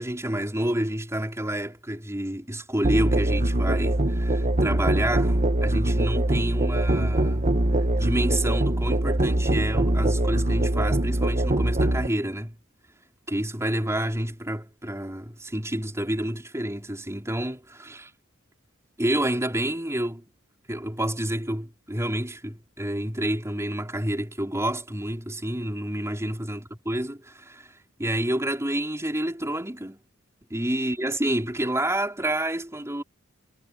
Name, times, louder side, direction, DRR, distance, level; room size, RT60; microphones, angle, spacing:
voice 1, 0.0-7.5 8.0-12.6 13.3-18.1 19.0-20.2 20.7-30.0 30.5-33.0, right 1 dB, 15° right, 4.6 m, -29 dB
Musical instrument, 2.8-12.1, right 1 dB, 35° right, 1.2 m, -23 dB
head